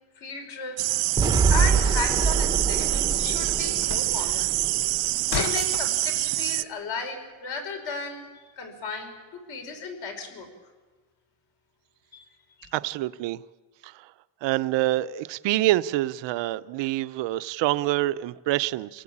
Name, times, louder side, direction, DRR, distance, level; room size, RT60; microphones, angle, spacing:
voice 1, 0.2-1.2 1.5-4.5 5.3-8.2 8.6-10.5 12.1-12.2 12.6-12.7, left 4 dB, 50° left, 5.2 m, -35 dB
sound 1, 0.8-6.6, right 19 dB, 90° right, 0.9 m, -26 dB
sound 2, 1.2-6.2, left 6 dB, 70° left, 1.7 m, -38 dB
sound 3, 1.2-5.3, right 5 dB, 10° right, 1.0 m, -25 dB
voice 2, 12.7-13.4 13.8-14.1 14.4-19.0, right 16 dB, 60° right, 0.8 m, -26 dB
26.5 x 18.0 x 8.7 m
cardioid pair, 175°, 50 cm